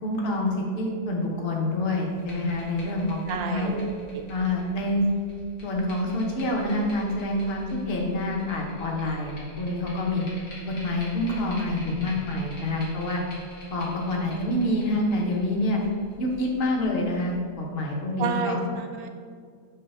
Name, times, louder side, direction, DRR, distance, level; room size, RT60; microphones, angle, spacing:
voice 1, 0.0-3.7 4.3-5.1 5.6-10.2 10.7-13.2 13.7-15.8 16.2-18.6, left 1 dB, 45° left, -1 dB, 0.9 m, -27 dB
sound 1, 2.1-17.3, left 1 dB, 90° left, 2.1 m, -46 dB
voice 2, 3.3-4.3 18.2-19.1, right 6 dB, 70° right, 5 dB, 1.0 m, -31 dB
5.6 x 3.1 x 5.3 m, 2.1 s
omnidirectional pair, 1.7 m